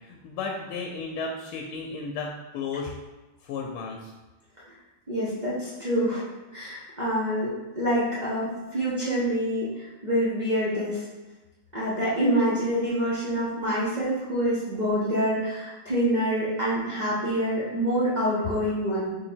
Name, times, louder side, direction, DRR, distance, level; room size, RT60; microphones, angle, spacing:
voice 1, 0.1-2.9 3.4-4.1, left 4 dB, 80° left, 0 dB, 1.4 m, -33 dB
voice 2, 5.1-6.2 6.5-11.0 11.7-19.2, equal, 75° right, -9 dB, 0.4 m, -26 dB
4.2 x 2.9 x 4.3 m, 1.1 s
omnidirectional pair, 2.3 m